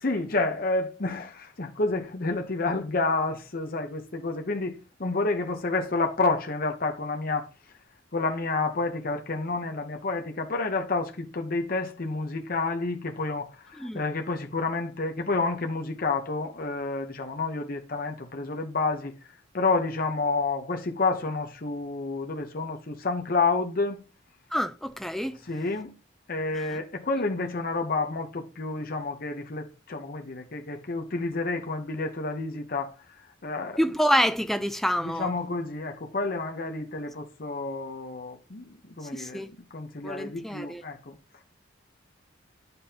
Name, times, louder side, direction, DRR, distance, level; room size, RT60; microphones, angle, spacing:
voice 1, 0.0-7.5 8.1-24.0 25.5-25.9 26.3-33.8 35.0-39.4 39.7-41.2, left 3 dB, 50° left, 0.9 m, -29 dB
voice 2, 24.5-25.4 33.8-35.3 39.1-39.5 40.0-40.8, equal, ahead, 0.5 m, -27 dB
9.8 x 5.3 x 2.8 m
head